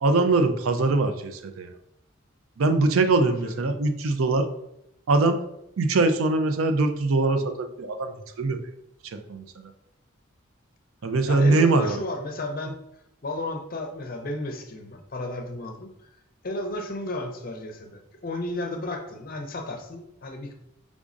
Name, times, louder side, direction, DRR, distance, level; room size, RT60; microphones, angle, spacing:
voice 1, 0.0-1.7 2.6-4.5 5.1-5.4 5.8-8.1 8.4-8.6 9.3-9.4 11.0-12.0, right 3 dB, 85° right, 7 dB, 0.5 m, -22 dB
voice 2, 3.2-3.6 11.3-12.7 13.2-15.9 16.4-20.5, left 1 dB, 45° left, 5 dB, 0.5 m, -33 dB
5.1 x 3.6 x 2.5 m, 0.81 s
head